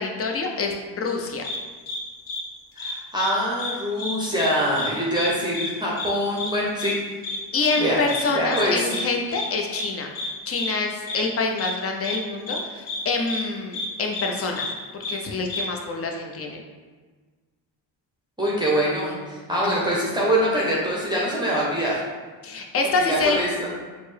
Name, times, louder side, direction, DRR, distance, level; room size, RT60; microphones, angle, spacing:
voice 1, 0.0-1.4 7.5-10.1 10.5-14.7 15.1-16.6 19.6-19.7 22.4-23.4, left 3 dB, 30° left, 2 dB, 0.6 m, -26 dB
sound 1, 1.4-1.6 1.9-2.0 2.3-2.4 2.8-3.3 3.6-3.7 4.0-4.5 4.8-4.9 5.2-5.3 5.5-5.7 6.0-6.1 6.4-6.5 6.8-6.9 7.2-7.4 7.7-7.8 8.1-8.2 8.5-8.6 8.9-9.0 9.3-9.5 9.7-9.9 10.2-10.3 10.6-10.7 11.1-11.2 11.6-11.7 12.0-12.2 12.5-12.6 12.9-13.0 13.3-13.4 13.7-13.9 14.1-14.3 14.5-14.7 15.0-15.1 15.5-15.6, left 2 dB, 75° left, 0.8 m, -30 dB
voice 2, 2.8-7.0 7.8-8.0 8.3-8.8 18.4-22.0 23.1-23.7, equal, 10° right, -5 dB, 0.8 m, -24 dB
4.2 x 2.0 x 3.2 m, 1.4 s
supercardioid pair, 70°, 46 cm